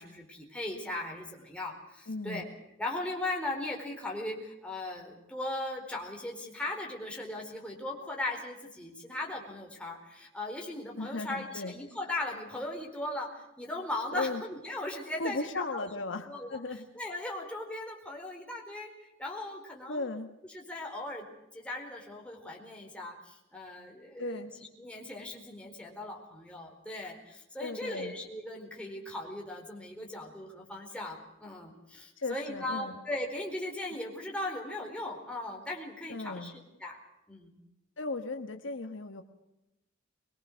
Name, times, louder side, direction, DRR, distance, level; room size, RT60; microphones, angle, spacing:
voice 1, 0.0-2.5 2.8-15.9 16.3-16.6 16.9-18.9 19.2-20.1 20.5-21.3 21.5-24.5 24.8-37.0 37.3-37.6, left 1 dB, 5° left, -1 dB, 4.6 m, -38 dB
voice 2, 2.1-2.4 11.0-11.7 14.1-14.4 15.2-16.8 19.9-20.3 24.2-24.5 27.6-28.1 32.2-32.9 36.1-36.5 38.0-39.2, left 3 dB, 65° left, 6 dB, 1.5 m, -36 dB
23.5 x 22.5 x 6.5 m, 0.92 s
head